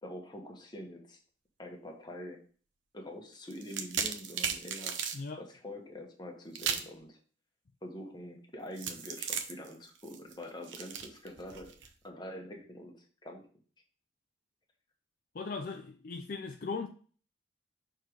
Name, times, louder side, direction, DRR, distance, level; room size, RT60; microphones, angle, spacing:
voice 1, 0.0-1.2 1.6-2.4 2.9-7.2 7.8-11.7 12.0-13.4, left 1 dB, 25° left, 1.2 m, -45 dB
sound 1, 3.5-5.2 6.6-7.0 8.8-11.9, right 7 dB, 85° right, 0.9 m, -36 dB
voice 2, 15.3-16.9, left 4 dB, 50° left, 0.5 m, -38 dB
6.5 x 3.7 x 4.6 m
head